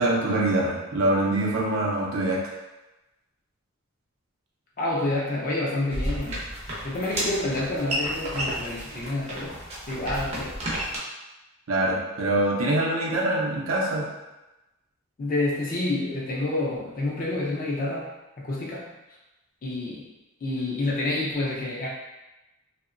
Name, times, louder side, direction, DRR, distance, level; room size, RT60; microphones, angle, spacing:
voice 1, 0.0-2.4 11.7-14.1, right 1 dB, 80° right, -4 dB, 0.6 m, -24 dB
voice 2, 4.8-6.4 6.8-9.6 9.9-10.5 15.2-18.1 18.4-18.9 19.6-20.1 20.4-21.9, left 2 dB, 40° left, -4 dB, 0.4 m, -28 dB
sound 1, 5.9-11.0, right 1 dB, 30° right, 0.5 m, -32 dB
2.8 x 2.1 x 2.4 m, 1.0 s
head